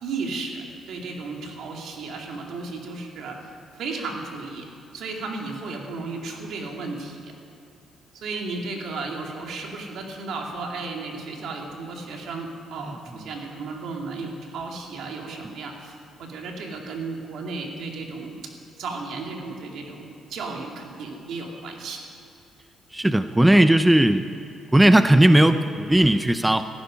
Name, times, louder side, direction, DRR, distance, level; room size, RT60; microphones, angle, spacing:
voice 1, 0.0-4.6 4.9-7.3 8.1-18.3 18.8-22.1, right 3 dB, 75° right, 1 dB, 2.5 m, -34 dB
voice 2, 22.9-24.3 24.7-26.6, right 1 dB, 10° right, 10 dB, 0.5 m, -17 dB
17.0 x 15.0 x 5.2 m, 2.6 s
cardioid pair, 90°, 0 cm